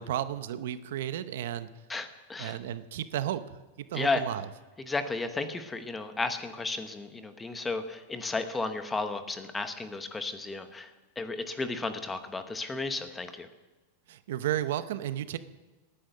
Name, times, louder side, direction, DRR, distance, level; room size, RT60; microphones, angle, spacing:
voice 1, 0.0-1.7 2.4-3.4 3.8-4.4 14.1-15.4, right 11 dB, 70° right, 13 dB, 0.8 m, -33 dB
voice 2, 1.9-2.6 3.9-4.2 4.8-10.9 11.2-13.5, left 3 dB, 10° left, 9 dB, 1.0 m, -33 dB
18.0 x 10.0 x 6.7 m, 1.2 s
supercardioid pair, 155°, 0 cm